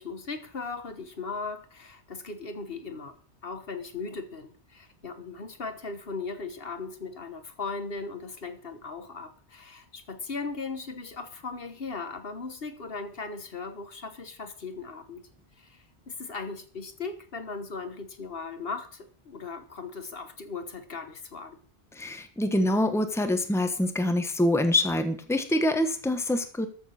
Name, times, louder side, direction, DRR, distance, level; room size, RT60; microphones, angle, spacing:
voice 1, 0.0-3.2 3.4-15.2 15.6-21.6, left 4 dB, 60° left, 9 dB, 1.5 m, -38 dB
voice 2, 21.9-26.7, left 1 dB, 5° left, 8 dB, 1.1 m, -25 dB
13.5 x 6.3 x 6.4 m, 0.43 s
omnidirectional pair, 1.1 m